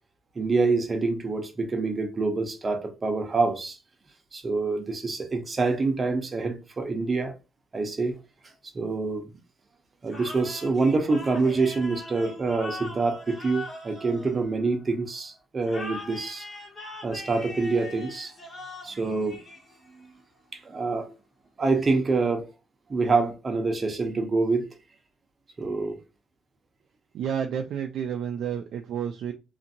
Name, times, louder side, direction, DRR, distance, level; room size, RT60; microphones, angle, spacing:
voice 1, 0.3-3.8 4.3-7.3 7.7-8.2 8.7-9.3 10.0-16.5 17.0-18.3 18.8-19.4 20.0-20.1 20.5-21.1 21.6-22.5 22.9-24.7 25.6-26.0, right 3 dB, 30° right, 0.7 m, -26 dB
sound 1, 10.1-14.9 15.6-20.0, left 1 dB, 30° left, 1.3 m, -41 dB
voice 2, 27.1-29.3, right 8 dB, 70° right, 0.3 m, -30 dB
2.8 x 2.5 x 2.7 m
cardioid pair, 110°, 0 cm